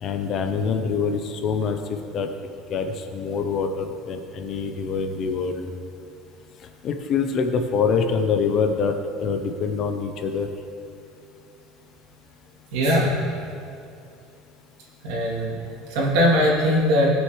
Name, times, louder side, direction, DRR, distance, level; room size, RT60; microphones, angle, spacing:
voice 1, 0.0-1.8 2.1-2.3 2.7-5.7 6.8-10.5, left 5 dB, 35° left, 6 dB, 0.7 m, -25 dB
voice 2, 12.7-13.1 15.0-15.5 15.9-17.1, equal, 65° right, -4 dB, 2.7 m, -20 dB
18.5 x 6.3 x 3.2 m, 2.5 s
cardioid pair, 165°, 0 cm